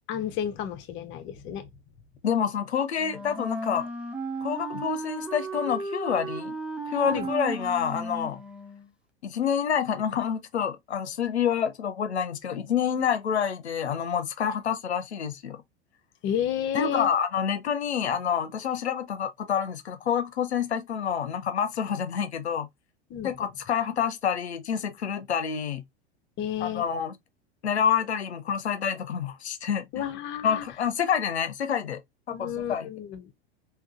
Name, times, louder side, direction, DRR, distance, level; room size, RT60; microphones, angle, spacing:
voice 1, 0.1-1.7 7.1-7.3 16.2-17.1 23.1-23.3 26.4-26.9 29.9-30.7 32.3-33.3, left 9 dB, 35° left, 0.8 m, -31 dB
voice 2, 2.2-3.8 4.4-6.6 6.9-8.4 9.2-15.6 16.7-22.7 23.2-25.8 26.6-27.1 27.6-30.0 30.4-32.0 32.3-32.9, left 8 dB, 80° left, 0.7 m, -28 dB
Wind instrument woodwind instrument, 3.0-8.9, right 2 dB, 5° right, 0.3 m, -35 dB
3.7 x 2.5 x 2.4 m
hypercardioid pair, 90°, 32 cm